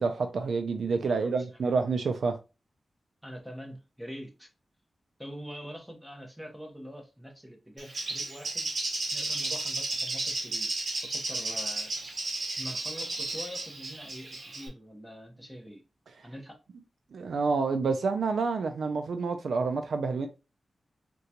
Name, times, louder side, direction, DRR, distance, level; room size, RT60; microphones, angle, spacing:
voice 1, 0.0-2.4 17.1-20.3, right 4 dB, 90° right, 0.3 m, -28 dB
voice 2, 0.9-1.4 1.6-1.7 3.2-4.5 5.2-8.7 9.1-10.7 11.0-11.9 12.6-15.8 16.2-16.6, equal, 5° right, 0.9 m, -44 dB
Bird, 7.8-14.7, right 2 dB, 55° right, 0.9 m, -33 dB
3.7 x 2.2 x 2.8 m
wide cardioid pair, 105°, 0 cm